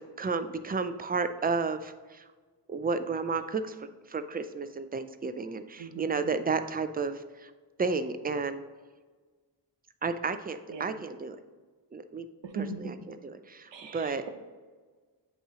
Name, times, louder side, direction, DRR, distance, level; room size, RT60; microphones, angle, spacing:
voice 1, 0.0-2.2 2.7-7.5 7.8-8.6 10.0-11.4 11.9-12.3 12.8-14.2, right 4 dB, 20° right, 10 dB, 0.4 m, -32 dB
voice 2, 5.8-6.3 10.7-11.0 12.4-12.8 13.7-14.3, right 4 dB, 85° right, 5 dB, 0.9 m, -39 dB
8.0 x 3.1 x 4.9 m, 1.4 s
wide cardioid pair, 80°, 42 cm